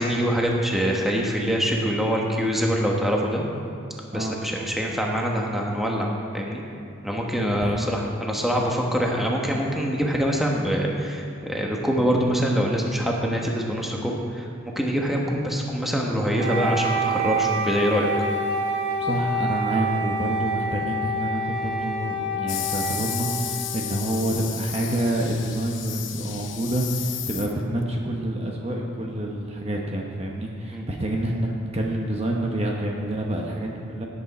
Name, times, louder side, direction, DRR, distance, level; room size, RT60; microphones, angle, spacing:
voice 1, 0.0-3.4 4.1-6.1 6.3-6.6 7.0-14.5 14.7-18.1 30.7-30.8, equal, ahead, -2 dB, 1.2 m, -24 dB
Wind instrument woodwind instrument, 16.4-24.4, right 1 dB, 60° right, 1.6 m, -28 dB
voice 2, 19.0-34.0, right 1 dB, 30° right, 0 dB, 0.9 m, -27 dB
sound 1, 22.5-27.8, left 11 dB, 60° left, 0.8 m, -33 dB
17.5 x 8.3 x 4.2 m, 2.6 s
head